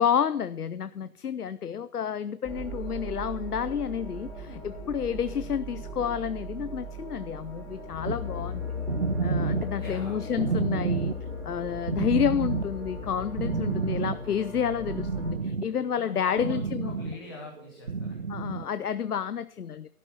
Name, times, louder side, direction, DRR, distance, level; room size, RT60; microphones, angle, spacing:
voice 1, 0.0-8.7 9.2-11.1 11.4-16.9 18.3-19.9, left 8 dB, 80° left, 14 dB, 0.7 m, -30 dB
sound 1, 2.4-15.3, left 2 dB, ahead, 1.8 m, -38 dB
sound 2, 8.1-18.8, right 5 dB, 45° right, 0.8 m, -31 dB
voice 2, 9.8-10.2 15.9-18.2, left 3 dB, 15° left, -1 dB, 1.2 m, -43 dB
12.0 x 9.2 x 5.8 m, 0.64 s
figure-of-eight pair, 160°, 45 cm